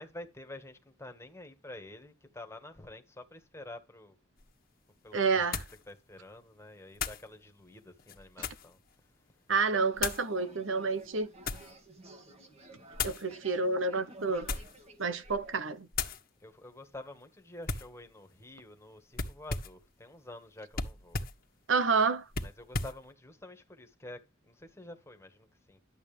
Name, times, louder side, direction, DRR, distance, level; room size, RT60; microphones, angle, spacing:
voice 1, 0.0-4.2 5.0-5.5 5.9-8.8 16.4-21.2 22.4-25.8, left 1 dB, 15° left, 1.8 m, -48 dB
sound 1, 4.4-4.5 5.5-5.8 6.9-7.3 8.0-8.7 10.0-10.3 11.0-11.7 12.9-13.2 14.3-14.8 15.2-15.5 15.9-16.2 17.6-17.9 19.1-19.8 20.7-21.4 22.3-23.0, left 4 dB, 50° left, 1.6 m, -36 dB
voice 2, 5.1-5.6 9.5-11.3 13.0-14.5 15.0-15.9 21.7-22.2, right 4 dB, 70° right, 1.0 m, -29 dB
sound 2, 9.7-15.7, right 1 dB, 35° right, 2.2 m, -53 dB
12.5 x 8.1 x 3.5 m
head